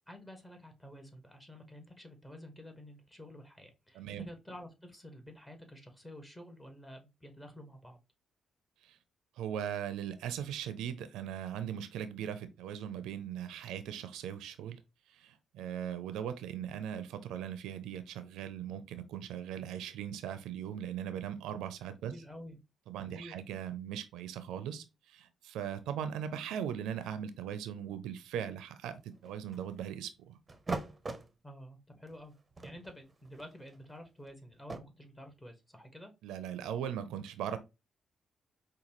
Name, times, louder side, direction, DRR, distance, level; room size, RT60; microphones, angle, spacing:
voice 1, 0.1-8.0 22.1-22.6 23.1-23.4 31.4-32.3 32.6-36.1, left 1 dB, 15° left, 1.2 m, -50 dB
voice 2, 3.9-4.3 8.8-9.0 9.4-14.8 15.1-22.1 22.9-30.4 36.2-37.6, right 9 dB, 90° right, 0.4 m, -39 dB
sound 1, 29.0-29.8 30.5-31.3 32.1-32.2 32.5-34.8, right 3 dB, 30° right, 0.6 m, -41 dB
5.1 x 2.3 x 2.9 m
cardioid pair, 75°, 0 cm